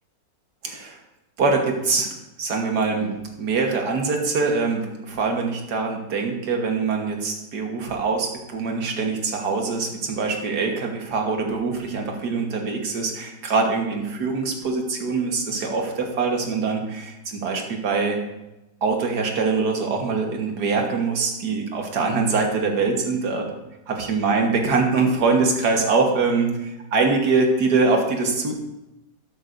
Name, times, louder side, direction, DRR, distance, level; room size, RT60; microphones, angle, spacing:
voice 1, 0.6-1.0 1.4-2.1 2.4-18.2 18.8-23.5 23.9-28.6, right 4 dB, 65° right, 2 dB, 1.9 m, -23 dB
13.0 x 8.8 x 2.6 m, 0.97 s
omnidirectional pair, 1.9 m